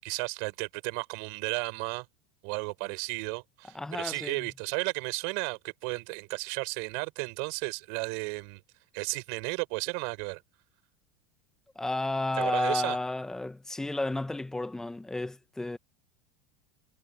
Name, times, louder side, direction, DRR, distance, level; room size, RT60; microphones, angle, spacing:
voice 1, 0.0-2.1 2.4-8.6 8.9-10.4 12.4-13.0, right 38 dB, 65° right, 6.5 m, -34 dB
voice 2, 3.7-4.5 11.7-15.8, left 2 dB, 10° left, 1.3 m, -32 dB
hypercardioid pair, 90°, 6 cm